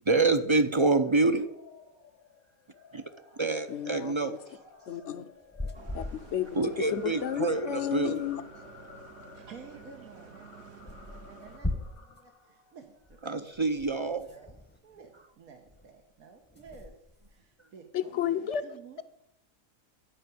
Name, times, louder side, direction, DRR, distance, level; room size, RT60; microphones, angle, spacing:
voice 1, 0.1-1.5 2.9-3.0 3.4-4.4 6.5-8.2 13.2-14.3, right 3 dB, 40° right, 9 dB, 0.4 m, -26 dB
sound 1, 1.1-13.5, left 5 dB, 85° left, 2.2 m, -53 dB
voice 2, 3.7-4.1 4.9-5.2 5.9-6.6 6.9-8.4 17.9-18.6, left 10 dB, 60° left, 12 dB, 1.0 m, -32 dB
sound 2, 5.3-6.8 7.0-7.1 7.3-7.4 7.6-8.7 9.7-9.8 10.1-10.2 10.9-12.3 13.0-15.4 15.6-16.0 16.4-17.5, left 1 dB, 10° left, 0.7 m, -40 dB
Bus, 5.7-11.6, right 6 dB, 55° right, 1.0 m, -51 dB
voice 3, 9.3-14.6 14.8-17.0 17.3-19.0, right 6 dB, 90° right, 4 dB, 1.6 m, -52 dB
12.0 x 5.8 x 9.2 m, 0.82 s
omnidirectional pair, 1.5 m